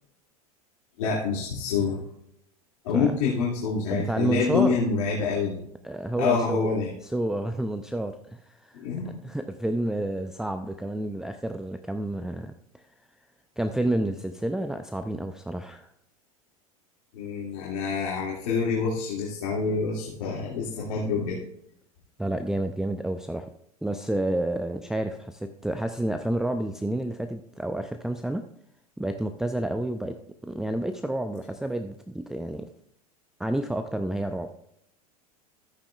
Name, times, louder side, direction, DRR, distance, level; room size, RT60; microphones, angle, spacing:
voice 1, 1.0-2.0 2.8-5.6 6.2-6.9 8.7-9.1 17.1-21.4, left 5 dB, 60° left, -5 dB, 2.5 m, -26 dB
voice 2, 3.9-4.8 5.8-6.7 7.0-8.8 9.2-12.8 13.6-15.9 22.2-23.5 23.8-28.5 29.0-30.2 30.4-32.7 33.4-34.5, right 1 dB, 5° right, 7 dB, 0.5 m, -29 dB
13.5 x 8.9 x 2.4 m, 0.73 s
hypercardioid pair, 85°, 19 cm